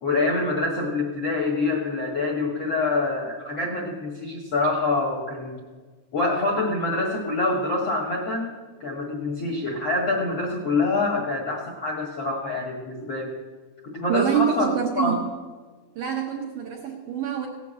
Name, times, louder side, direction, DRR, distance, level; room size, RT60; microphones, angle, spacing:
voice 1, 0.0-5.6 6.1-8.5 8.8-13.3 13.9-14.7 14.9-15.2, left 2 dB, 55° left, -1 dB, 1.7 m, -25 dB
voice 2, 14.1-15.3 16.0-17.5, right 9 dB, 65° right, -1 dB, 2.1 m, -26 dB
17.0 x 7.1 x 8.1 m, 1.4 s
omnidirectional pair, 4.9 m